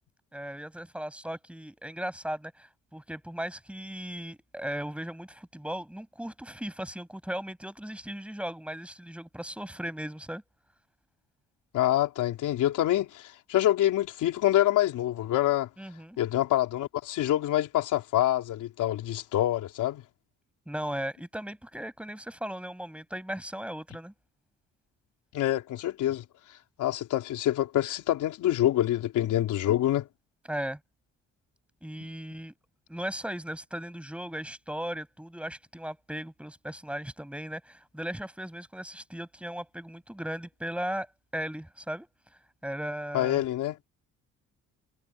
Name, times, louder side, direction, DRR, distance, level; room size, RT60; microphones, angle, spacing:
voice 1, 0.3-10.4 15.8-16.2 20.7-24.1 30.5-30.8 31.8-32.5 32.9-41.1 41.3-42.1 42.6-43.4, equal, 5° right, 7.3 m, -37 dB
voice 2, 11.7-15.7 16.2-20.0 25.3-26.2 26.8-30.1 43.1-43.8, left 13 dB, 85° left, 3.7 m, -26 dB
cardioid pair, 90°, 30 cm